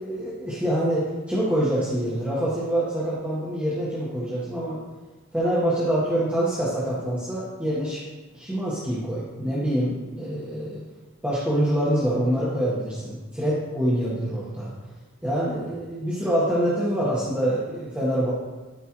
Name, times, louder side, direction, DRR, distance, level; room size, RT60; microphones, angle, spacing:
voice 1, 0.0-4.8 5.3-8.0 8.3-10.8 11.2-14.7 15.2-18.3, right 1 dB, 5° right, -9 dB, 1.4 m, -25 dB
12.5 x 5.2 x 3.1 m, 1.2 s
head